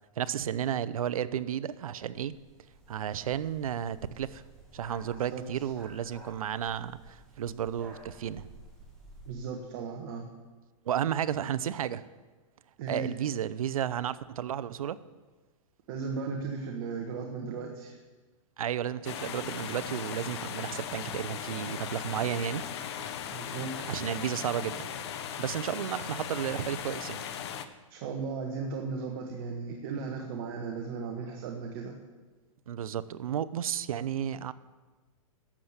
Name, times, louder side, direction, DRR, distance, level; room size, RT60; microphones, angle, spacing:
voice 1, 0.2-2.3 2.9-4.4 4.7-8.5 10.9-12.0 12.9-15.0 18.6-22.6 23.8-24.9 25.4-27.2 32.7-34.5, right 9 dB, 80° right, 16 dB, 0.7 m, -32 dB
sound 1, 2.1-9.3, right 1 dB, ahead, 2.2 m, -53 dB
voice 2, 9.3-10.3 12.8-13.1 15.9-18.0 23.3-23.9 27.9-32.0, right 5 dB, 40° right, 1 dB, 1.5 m, -36 dB
sound 2, 19.0-27.6, left 8 dB, 50° left, 0.9 m, -38 dB
12.0 x 7.4 x 8.1 m, 1.3 s
hypercardioid pair, 160°, 18 cm